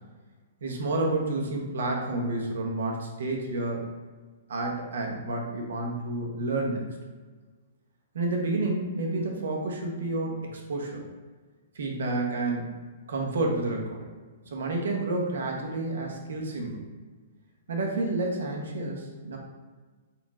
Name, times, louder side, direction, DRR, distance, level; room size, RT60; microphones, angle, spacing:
voice 1, 0.6-3.9 4.5-6.9 8.1-11.0 11.7-12.7 13.1-14.0 14.4-16.9 17.7-19.4, right 2 dB, 85° right, 0 dB, 0.9 m, -30 dB
4.3 x 2.5 x 4.0 m, 1.3 s
hypercardioid pair, 170°, 0 cm